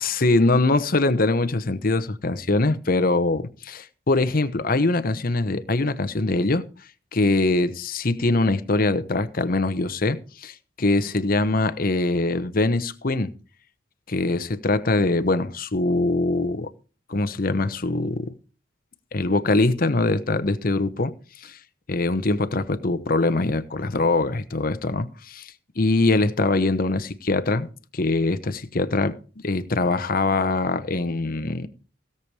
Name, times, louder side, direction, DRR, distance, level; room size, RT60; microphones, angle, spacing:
voice 1, 0.0-6.7 7.1-13.3 14.1-16.7 17.1-18.3 19.1-21.6 21.9-27.7 27.9-29.2 29.4-31.7, left 2 dB, 45° left, 0.9 m, -23 dB
17.0 x 6.9 x 4.8 m
head